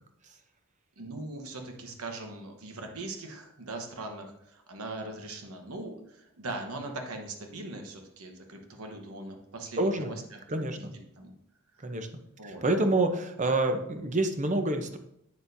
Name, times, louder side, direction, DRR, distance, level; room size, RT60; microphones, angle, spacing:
voice 1, 1.0-11.3 11.7-11.8 12.4-12.6, right 2 dB, 85° right, 4 dB, 1.1 m, -41 dB
voice 2, 9.8-10.1 10.5-10.9 11.8-12.1 12.4-15.0, right 2 dB, 35° right, 7 dB, 0.7 m, -27 dB
8.6 x 6.6 x 2.7 m, 0.76 s
head